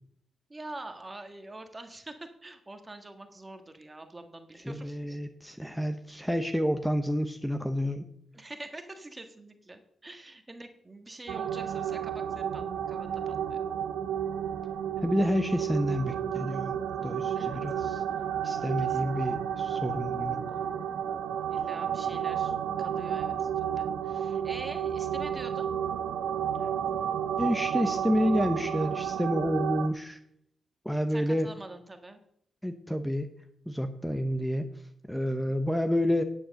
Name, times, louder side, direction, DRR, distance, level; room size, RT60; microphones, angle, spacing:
voice 1, 0.5-5.2 8.3-13.6 17.3-17.6 18.8-19.2 21.5-25.7 31.1-32.2, right 2 dB, 25° right, 6 dB, 1.6 m, -45 dB
voice 2, 4.7-8.0 15.0-18.0 18.4-20.4 27.4-30.2 30.8-31.5 32.6-33.3 33.7-34.7 35.1-36.2, equal, 5° left, 8 dB, 1.0 m, -29 dB
sound 1, 11.3-29.9, right 9 dB, 90° right, 0.8 m, -31 dB
9.9 x 7.8 x 6.6 m, 0.71 s
cardioid pair, 60°, 0 cm